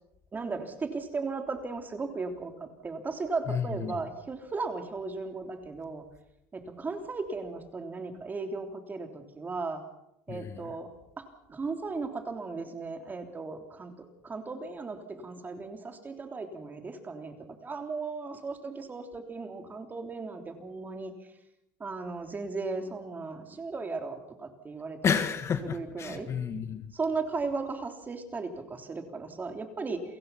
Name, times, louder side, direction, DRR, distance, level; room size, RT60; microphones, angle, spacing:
voice 1, 0.3-6.0 6.5-9.8 10.3-10.9 11.2-11.3 11.5-17.3 17.6-21.1 21.8-25.2 25.6-26.3 26.9-30.0, right 4 dB, 25° right, 5 dB, 3.4 m, -36 dB
voice 2, 3.5-4.0 10.3-10.8 25.0-26.9, left 7 dB, 35° left, 9 dB, 1.7 m, -31 dB
29.0 x 16.5 x 5.8 m, 0.79 s
supercardioid pair, 105°, 8 cm